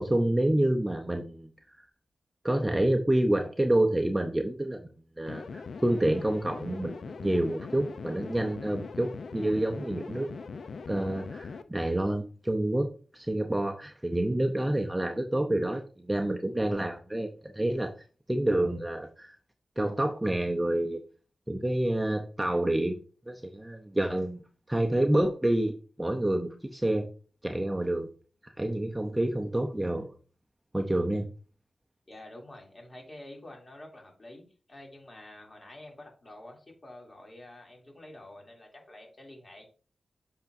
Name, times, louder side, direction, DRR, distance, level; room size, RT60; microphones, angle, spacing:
voice 1, 0.0-1.5 2.4-10.3 10.9-17.3 17.5-17.9 18.3-19.3 19.8-21.0 21.5-23.0 23.3-24.4 24.7-25.7 26.0-27.1 27.4-28.1 28.6-30.1 30.7-31.3, right 1 dB, 10° right, 4 dB, 0.7 m, -28 dB
sound 1, 5.3-11.6, left 4 dB, 70° left, 0.5 m, -41 dB
voice 2, 32.1-39.7, left 1 dB, 30° left, 0 dB, 2.8 m, -48 dB
8.2 x 5.8 x 2.6 m, 0.38 s
wide cardioid pair, 95°, 0 cm